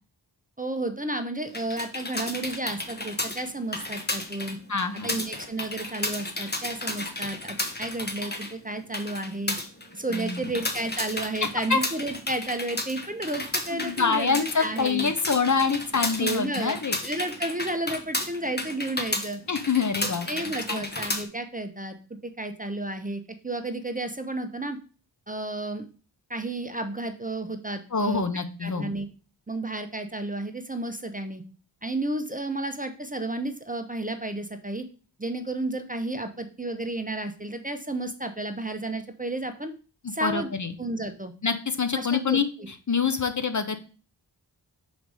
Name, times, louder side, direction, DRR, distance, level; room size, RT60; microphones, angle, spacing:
voice 1, 0.6-4.6 5.0-9.6 9.9-15.1 16.2-16.8 17.0-19.4 20.0-22.0 22.2-24.8 25.3-25.9 26.3-28.2 28.6-29.1 29.5-31.4 31.8-34.8 35.2-39.7 40.1-40.5 40.8-41.3 41.9-42.7, right 2 dB, 20° right, 7 dB, 0.6 m, -32 dB
sound 1, 1.5-21.2, left 2 dB, 20° left, 0.9 m, -33 dB
voice 2, 4.7-5.3 10.1-10.5 11.7-11.8 13.7-17.0 19.5-20.3 20.7-20.9 27.9-28.9 40.0-40.7 41.4-42.5 42.9-43.8, left 5 dB, 40° left, 8 dB, 0.6 m, -26 dB
5.1 x 4.1 x 4.7 m, 0.37 s
wide cardioid pair, 75°, 45 cm